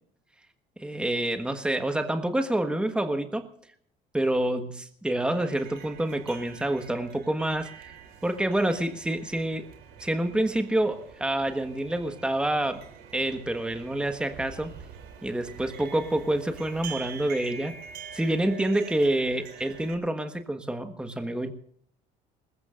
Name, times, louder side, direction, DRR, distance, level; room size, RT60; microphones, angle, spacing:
voice 1, 0.8-3.5 4.1-7.9 8.2-9.6 10.0-12.8 13.1-14.7 15.2-17.8 18.1-21.5, right 1 dB, 5° right, 7 dB, 1.4 m, -27 dB
sound 1, 5.3-19.9, right 7 dB, 80° right, 3.2 m, -45 dB
20.5 x 20.5 x 2.5 m, 0.67 s
cardioid pair, 100°, 16 cm